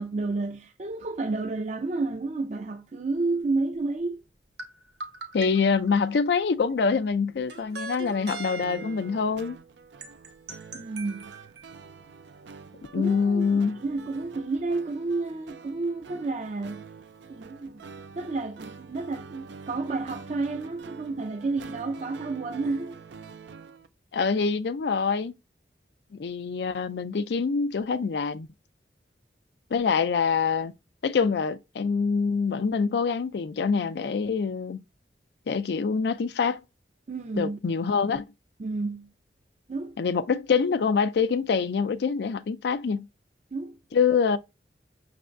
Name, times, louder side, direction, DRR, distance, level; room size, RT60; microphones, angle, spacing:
voice 1, 0.0-4.2 8.0-8.1 10.7-11.3 12.9-16.9 17.3-17.9 18.2-23.0 37.1-37.6 38.6-39.1 39.7-40.0 43.5-43.8, right 3 dB, 40° right, 0.4 m, -31 dB
sound 1, 4.6-6.5 7.5-9.2 10.0-11.7, right 4 dB, 70° right, 1.0 m, -40 dB
voice 2, 5.3-9.6 12.9-13.8 24.1-25.3 26.1-28.5 29.7-30.7 31.0-34.8 35.5-36.6 37.4-38.2 40.0-43.1 43.9-44.4, left 5 dB, 70° left, 0.4 m, -25 dB
sound 2, 8.6-23.9, right 5 dB, 90° right, 0.5 m, -46 dB
6.1 x 3.3 x 2.5 m
head